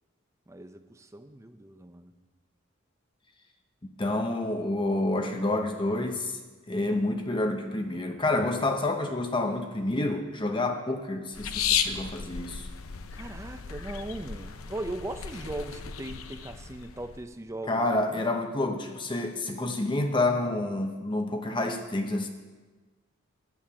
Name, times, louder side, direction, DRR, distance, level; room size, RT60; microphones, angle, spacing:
voice 1, 0.5-2.1 13.1-18.3, right 1 dB, 15° right, 9 dB, 0.5 m, -39 dB
voice 2, 3.8-6.4 6.7-12.7 17.7-22.3, left 2 dB, 25° left, 4 dB, 0.7 m, -28 dB
sound 1, 11.3-17.2, left 7 dB, 90° left, 0.7 m, -34 dB
10.0 x 8.8 x 6.1 m, 1.3 s
head